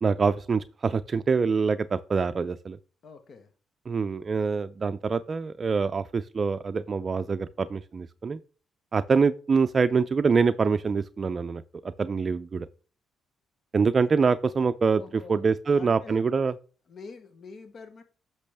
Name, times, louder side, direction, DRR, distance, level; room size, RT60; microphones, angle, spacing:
voice 1, 0.0-2.8 3.9-8.4 8.9-12.7 13.7-15.0 15.3-16.5, right 5 dB, 40° right, 0.4 m, -25 dB
voice 2, 3.0-3.5 15.0-16.2 16.9-18.0, left 4 dB, 55° left, 1.0 m, -46 dB
8.2 x 6.0 x 3.4 m
cardioid pair, 90°, 0 cm